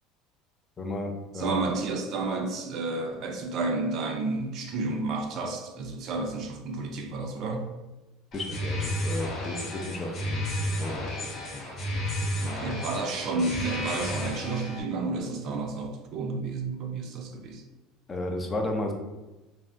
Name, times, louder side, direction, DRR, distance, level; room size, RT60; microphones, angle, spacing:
voice 1, 0.8-1.6 8.3-11.6 18.1-18.9, left 1 dB, 25° left, 3 dB, 0.4 m, -34 dB
voice 2, 1.4-7.7 12.4-17.6, right 3 dB, 50° right, 3 dB, 0.4 m, -31 dB
sound 1, 8.3-14.8, left 1 dB, 40° left, 0.8 m, -32 dB
3.4 x 2.0 x 2.5 m, 1.1 s
supercardioid pair, 125°, 0 cm